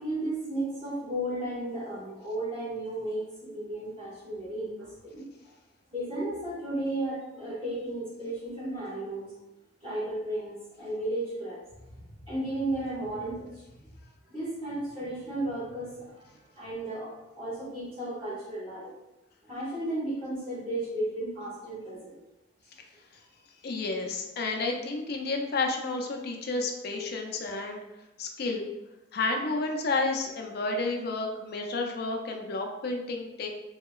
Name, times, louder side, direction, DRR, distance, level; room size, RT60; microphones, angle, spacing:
voice 1, 0.0-3.2 3.5-5.2 5.9-9.3 9.8-11.6 11.9-12.0 12.3-13.7 14.3-18.9 19.5-22.2, right 1 dB, 30° right, -10 dB, 1.3 m, -34 dB
voice 2, 23.6-27.8 28.2-28.7 29.1-33.5, left 3 dB, 55° left, 2 dB, 0.4 m, -31 dB
2.8 x 2.8 x 2.3 m, 0.98 s
head